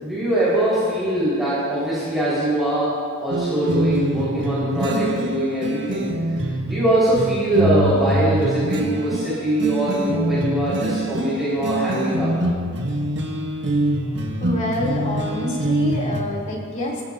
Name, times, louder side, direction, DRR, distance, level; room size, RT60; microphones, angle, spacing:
voice 1, 0.0-2.9 3.2-6.0 6.7-12.4, right 1 dB, ahead, -12 dB, 5.3 m, -22 dB
sound 1, 3.3-16.2, right 1 dB, 55° right, 1.4 m, -24 dB
voice 2, 14.4-17.0, left 1 dB, 35° left, -3 dB, 3.6 m, -27 dB
23.0 x 17.0 x 2.9 m, 2.1 s
head